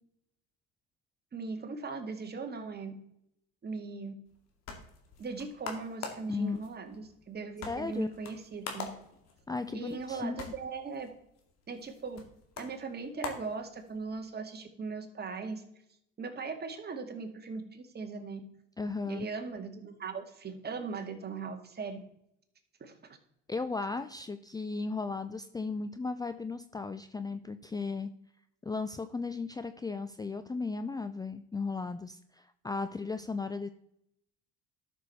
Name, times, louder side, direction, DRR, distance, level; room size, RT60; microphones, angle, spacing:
voice 1, 1.3-2.9 3.6-4.1 5.2-8.9 9.7-11.1 11.7-12.2 12.6-15.6 16.2-18.4 19.1-22.0 22.8-23.0, right 4 dB, 35° right, 5 dB, 2.0 m, -39 dB
sound 1, 4.3-14.2, left 5 dB, 60° left, 2.4 m, -46 dB
voice 2, 7.7-8.1 9.5-10.4 18.8-19.3 23.5-28.1 28.6-33.7, left 4 dB, 15° left, 11 dB, 0.5 m, -35 dB
12.5 x 6.4 x 4.1 m, 0.75 s
supercardioid pair, 85°, 30 cm